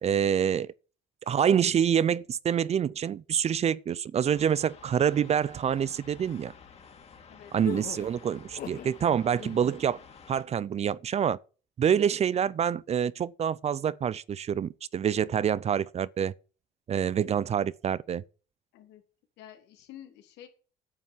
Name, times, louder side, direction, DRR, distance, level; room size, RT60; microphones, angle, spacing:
voice 1, 0.0-0.7 1.3-6.5 7.5-10.0 10.3-11.4 11.8-16.3 16.9-18.2, right 8 dB, 40° right, 0.6 m, -26 dB
sound 1, 4.3-10.4, left 6 dB, 35° left, 2.8 m, -52 dB
sound 2, 7.6-9.0 9.3-9.8, left 10 dB, 60° left, 2.1 m, -40 dB
voice 2, 19.4-20.5, left 11 dB, 85° left, 3.3 m, -49 dB
9.6 x 8.4 x 7.4 m
cardioid pair, 110°, 17 cm